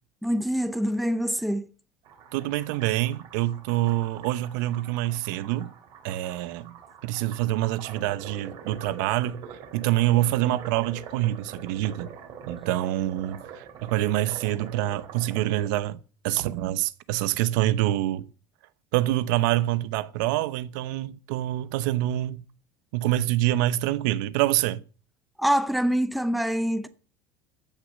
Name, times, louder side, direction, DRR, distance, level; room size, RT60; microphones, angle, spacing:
voice 1, 0.2-1.7 25.4-26.9, equal, ahead, 0.6 m, -25 dB
sound 1, 2.0-15.7, right 7 dB, 50° right, 3.2 m, -44 dB
voice 2, 2.3-5.7 6.0-6.7 7.0-9.4 9.7-12.1 12.5-16.0 16.2-18.3 18.9-22.4 22.9-24.8, right 15 dB, 80° right, 0.9 m, -26 dB
15.0 x 6.5 x 6.5 m
cardioid pair, 170°, 10 cm